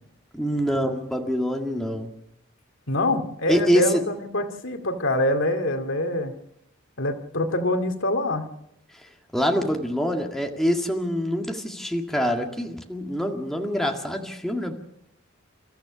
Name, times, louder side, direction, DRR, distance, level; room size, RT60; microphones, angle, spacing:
voice 1, 0.3-2.1 3.5-4.0 8.9-14.7, equal, ahead, 1 dB, 1.9 m, -25 dB
voice 2, 2.9-6.3 7.0-8.5, left 1 dB, 65° left, 6 dB, 2.3 m, -25 dB
29.5 x 14.0 x 6.2 m, 0.81 s
head